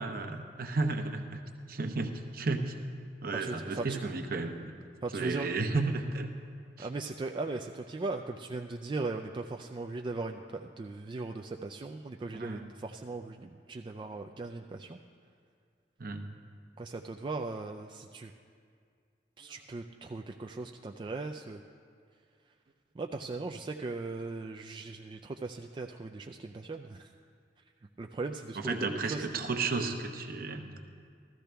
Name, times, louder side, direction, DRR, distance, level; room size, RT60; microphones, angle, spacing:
voice 1, 0.0-1.4 1.7-2.7 3.2-4.7 5.1-6.3 6.8-6.9 12.3-12.7 16.0-16.3 28.6-30.8, right 3 dB, 55° right, 5 dB, 0.8 m, -33 dB
voice 2, 3.3-4.0 5.0-5.5 6.8-15.0 16.8-18.3 19.4-21.6 22.9-27.1 28.0-29.3, right 3 dB, 25° right, 3 dB, 0.3 m, -38 dB
15.0 x 13.5 x 3.4 m, 2.2 s
head